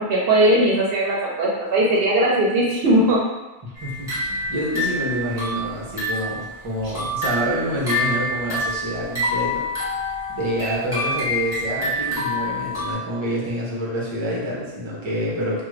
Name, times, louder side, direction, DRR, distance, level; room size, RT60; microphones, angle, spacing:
voice 1, 0.0-3.2 6.8-6.9, right 1 dB, 70° right, -4 dB, 0.7 m, -19 dB
voice 2, 3.6-9.7 10.4-15.6, equal, 35° right, -5 dB, 0.6 m, -27 dB
sound 1, 3.8-6.4 6.8-12.9, left 1 dB, 5° right, 0.9 m, -27 dB
2.4 x 2.2 x 3.1 m, 1.1 s
omnidirectional pair, 1.1 m